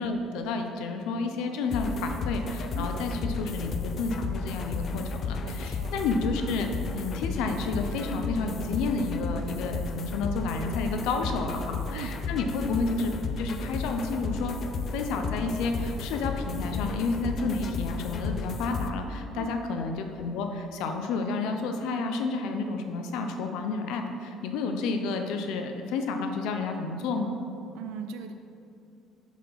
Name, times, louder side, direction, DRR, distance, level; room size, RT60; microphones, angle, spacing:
voice 1, 0.0-14.6 14.9-27.4, left 3 dB, 75° left, 5 dB, 0.7 m, -30 dB
sound 1, 1.7-18.9, left 4 dB, 35° left, 0.4 m, -33 dB
voice 2, 5.4-6.0 11.3-11.5 11.9-12.1 19.3-19.6 27.7-28.3, right 8 dB, 85° right, 6 dB, 0.4 m, -39 dB
7.2 x 4.4 x 5.7 m, 2.6 s
cardioid pair, 165°, 0 cm